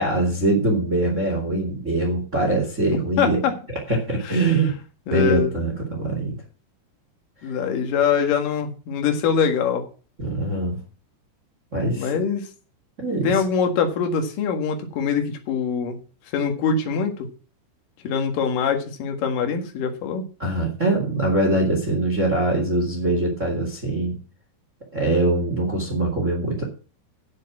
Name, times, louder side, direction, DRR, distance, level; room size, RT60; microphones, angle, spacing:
voice 1, 0.0-3.4 3.9-4.7 5.1-6.3 10.2-10.8 11.7-12.1 13.0-13.4 20.4-24.2 24.9-26.6, right 2 dB, 60° right, 1 dB, 0.7 m, -23 dB
voice 2, 3.2-3.5 5.1-5.5 7.4-9.9 12.0-12.5 13.2-16.0 16.3-17.3 18.0-20.2, left 6 dB, 55° left, 4 dB, 2.6 m, -23 dB
9.5 x 8.2 x 6.0 m, 0.36 s
omnidirectional pair, 5.9 m